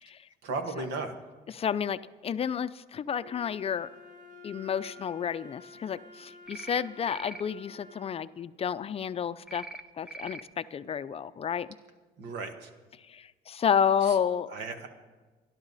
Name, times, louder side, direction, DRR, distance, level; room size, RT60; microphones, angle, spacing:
voice 1, 0.4-1.1 12.2-12.7 14.5-14.9, right 3 dB, 80° right, 6 dB, 1.9 m, -35 dB
voice 2, 1.5-3.9 4.4-9.7 10.0-11.7 13.1-14.5, left 7 dB, 35° left, 13 dB, 0.5 m, -30 dB
Wind instrument woodwind instrument, 3.2-8.3, left 3 dB, 45° right, 2.2 m, -50 dB
sound 1, 6.5-6.8 7.1-7.4 9.5-9.8 10.1-10.4, right 2 dB, 5° right, 0.8 m, -42 dB
29.0 x 11.5 x 4.1 m, 1.3 s
cardioid pair, 110°, 17 cm